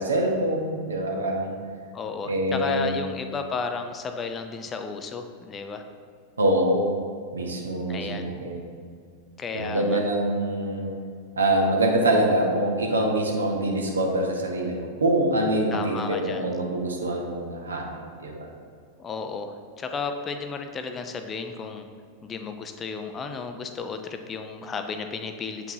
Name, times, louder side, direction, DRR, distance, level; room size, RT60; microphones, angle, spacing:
voice 1, 0.0-1.6 2.2-3.0 6.4-7.0 7.3-8.7 9.5-10.9 11.4-18.5, right 1 dB, 70° right, 1 dB, 0.9 m, -25 dB
voice 2, 1.9-5.8 7.9-8.3 9.4-10.0 15.7-16.5 19.0-21.9 22.2-25.7, left 5 dB, 25° left, 7 dB, 0.4 m, -33 dB
7.7 x 4.6 x 2.7 m, 2.2 s
figure-of-eight pair, 90°, 0 cm